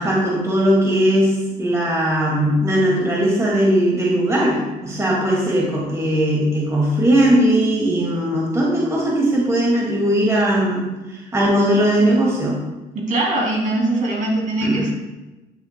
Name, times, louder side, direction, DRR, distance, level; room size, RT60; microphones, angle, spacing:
voice 1, 0.0-1.3 1.6-12.6 14.6-14.9, right 1 dB, 15° right, -3 dB, 2.1 m, -19 dB
voice 2, 12.9-14.9, right 2 dB, 50° right, -2 dB, 2.6 m, -21 dB
10.5 x 7.4 x 2.2 m, 1.1 s
cardioid pair, 110°, 17 cm